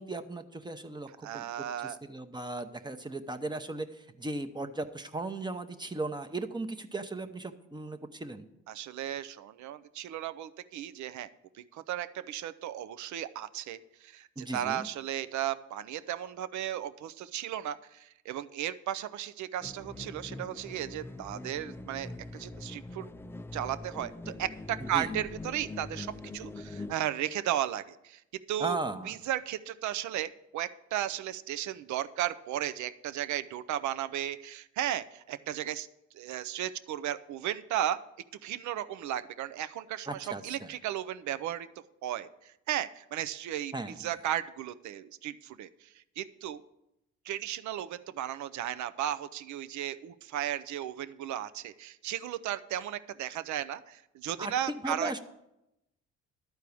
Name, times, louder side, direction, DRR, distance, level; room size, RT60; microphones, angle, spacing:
voice 1, 0.0-1.5 1.8-8.5 14.4-14.9 24.8-25.1 28.6-29.2 40.1-40.7 43.7-44.0 54.4-54.5 54.8-55.2, right 2 dB, 15° right, 6 dB, 0.8 m, -37 dB
voice 2, 1.2-2.0 8.7-11.3 11.5-23.1 23.5-28.2 28.5-28.8 29.0-35.9 36.1-38.0 38.4-41.7 42.0-46.6 47.3-55.2, right 11 dB, 70° right, 13 dB, 0.6 m, -35 dB
sound 1, 19.6-27.0, left 2 dB, 10° left, 0.4 m, -43 dB
12.0 x 4.6 x 8.4 m, 0.86 s
cardioid pair, 90°, 30 cm